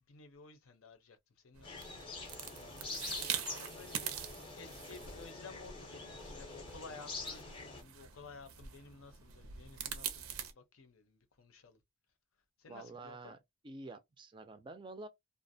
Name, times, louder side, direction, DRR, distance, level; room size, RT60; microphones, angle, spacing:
voice 1, 0.0-11.8 12.6-13.3, left 4 dB, 80° left, 0.6 m, -55 dB
sound 1, 1.5-10.5, right 9 dB, 85° right, 0.5 m, -44 dB
sound 2, 1.6-7.8, left 3 dB, 25° left, 0.6 m, -46 dB
voice 2, 12.7-13.4 13.6-15.1, right 2 dB, 25° right, 0.3 m, -48 dB
2.4 x 2.0 x 2.6 m
head